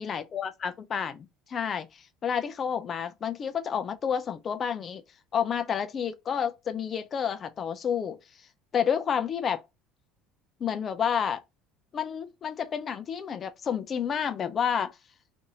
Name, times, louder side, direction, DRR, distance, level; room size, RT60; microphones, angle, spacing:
voice 1, 0.0-1.9 2.2-5.0 5.3-8.2 8.7-9.6 10.6-11.4 11.9-14.9, left 7 dB, 40° left, 0.4 m, -30 dB
2.6 x 2.6 x 2.7 m
supercardioid pair, 85°, 0 cm